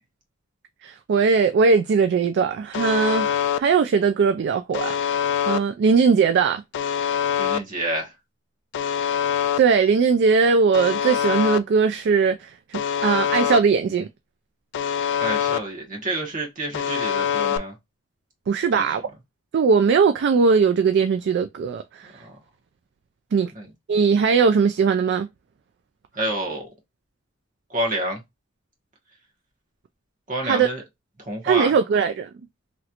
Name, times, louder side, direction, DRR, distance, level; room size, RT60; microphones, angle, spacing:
voice 1, 0.8-5.0 5.5-6.6 9.6-14.1 18.5-19.0 19.5-22.1 23.3-23.5 23.9-25.3 30.4-30.7 31.4-32.3, right 5 dB, 55° right, 0.3 m, -19 dB
Alarm, 2.7-3.6 4.7-5.6 6.7-7.6 8.7-9.6 10.7-11.6 12.7-13.6 14.7-15.6 16.7-17.6, left 8 dB, 60° left, 0.3 m, -24 dB
voice 2, 7.4-8.1 15.2-17.7 18.7-18.8 22.0-22.3 23.5-23.7 26.1-26.7 27.7-28.2 30.3-30.8 31.2-31.7, right 1 dB, 40° right, 1.3 m, -28 dB
3.1 x 2.9 x 2.4 m
head